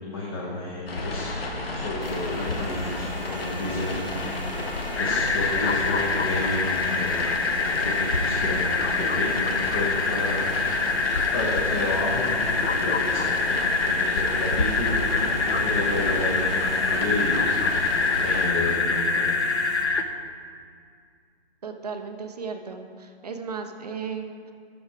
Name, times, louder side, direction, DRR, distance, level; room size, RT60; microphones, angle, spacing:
voice 1, 0.0-1.4 1.8-4.0 5.0-10.5 11.3-17.4 18.1-19.3, left 2 dB, 25° left, -6 dB, 1.3 m, -31 dB
sound 1, 0.9-18.5, left 2 dB, 60° left, 1.5 m, -32 dB
sound 2, 2.0-19.8, right 3 dB, ahead, 0.7 m, -41 dB
sound 3, 5.0-20.0, left 4 dB, 85° left, 0.8 m, -25 dB
voice 2, 21.6-24.5, right 5 dB, 40° right, 6 dB, 0.7 m, -35 dB
11.0 x 7.1 x 4.8 m, 2.3 s
hypercardioid pair, 165°, 33 cm